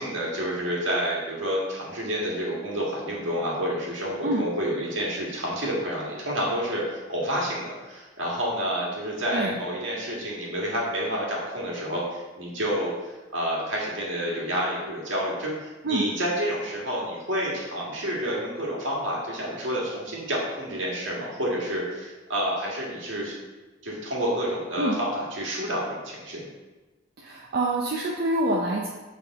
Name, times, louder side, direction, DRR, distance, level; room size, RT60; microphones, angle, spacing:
voice 1, 0.0-23.4 23.8-26.5, equal, 75° right, -4 dB, 1.7 m, -29 dB
voice 2, 27.2-28.9, right 1 dB, 55° right, -2 dB, 0.6 m, -26 dB
6.8 x 3.6 x 4.1 m, 1.2 s
head